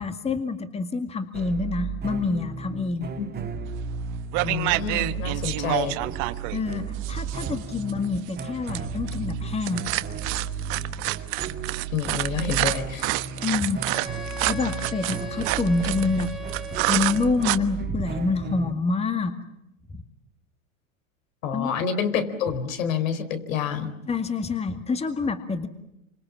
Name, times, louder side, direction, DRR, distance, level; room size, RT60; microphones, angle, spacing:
voice 1, 0.0-3.1 6.5-9.9 13.4-14.2 14.5-16.3 16.9-19.4 19.9-20.0 21.5-21.7 24.1-25.7, left 4 dB, 15° left, 8 dB, 2.1 m, -27 dB
sound 1, 1.3-18.7, right 6 dB, 25° right, 2.5 m, -34 dB
sound 2, 3.8-4.0 4.3-17.6, right 20 dB, 45° right, 1.3 m, -28 dB
voice 2, 4.4-6.1 11.9-13.1 21.4-23.9, left 7 dB, 70° left, 9 dB, 4.4 m, -28 dB
Wind instrument woodwind instrument, 13.9-17.5, right 2 dB, ahead, 2.5 m, -39 dB
28.5 x 26.0 x 7.3 m, 0.84 s
hypercardioid pair, 115°, 41 cm